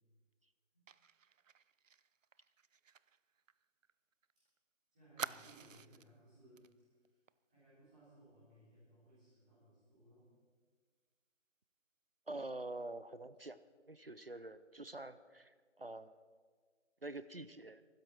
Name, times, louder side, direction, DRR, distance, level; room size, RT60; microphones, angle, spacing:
Fire, 0.9-4.3 4.6-4.7 5.2-6.1 6.6-6.7 7.1-7.3, right 7 dB, 90° right, 0.6 m, -49 dB
voice 1, 4.9-6.7 6.9-7.2 7.5-10.3, right 1 dB, 5° right, -12 dB, 3.5 m, -63 dB
voice 2, 12.3-13.6 13.9-16.1 17.0-17.8, right 2 dB, 50° right, 14 dB, 0.6 m, -46 dB
24.5 x 13.0 x 4.4 m, 1.6 s
figure-of-eight pair, 180°, 37 cm